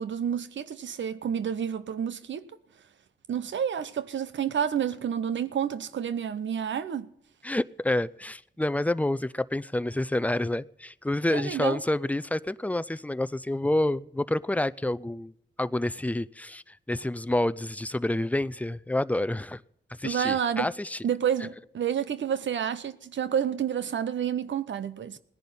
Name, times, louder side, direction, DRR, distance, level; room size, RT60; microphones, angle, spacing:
voice 1, 0.0-2.5 3.3-7.1 11.3-11.8 20.0-20.7 21.0-25.2, right 8 dB, 90° right, 0.7 m, -29 dB
voice 2, 7.4-15.3 15.6-19.6 20.0-21.0, left 1 dB, 10° left, 0.5 m, -28 dB
18.0 x 10.5 x 5.5 m
cardioid pair, 60°, 19 cm